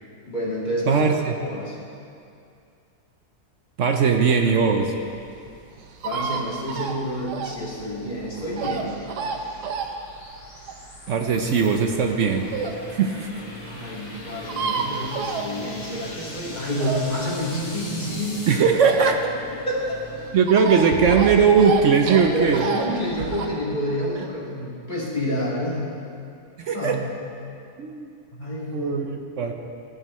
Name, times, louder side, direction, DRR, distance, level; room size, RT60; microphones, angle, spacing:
voice 1, 0.2-1.0 1.4-1.8 6.0-9.0 13.6-18.5 19.7-20.0 22.2-25.9 26.7-27.0 28.4-28.9, equal, 30° left, -5 dB, 2.2 m, -29 dB
voice 2, 0.9-1.3 3.8-4.9 11.1-12.5 12.9-13.3 18.5-19.4 20.3-22.7 26.6-27.0 27.8-28.1 28.7-29.5, right 5 dB, 60° right, 4 dB, 0.9 m, -19 dB
sound 1, 4.2-12.8 13.3-13.4 13.6-13.7 13.9-14.0 14.1-16.0 16.4-19.4 19.7-23.5, right 5 dB, 85° right, 1.4 m, -30 dB
sound 2, 7.4-18.6, left 1 dB, 85° left, 2.6 m, -43 dB
sound 3, 11.3-20.3, equal, 15° right, 2.4 m, -42 dB
15.5 x 11.0 x 3.1 m, 2.4 s
omnidirectional pair, 1.7 m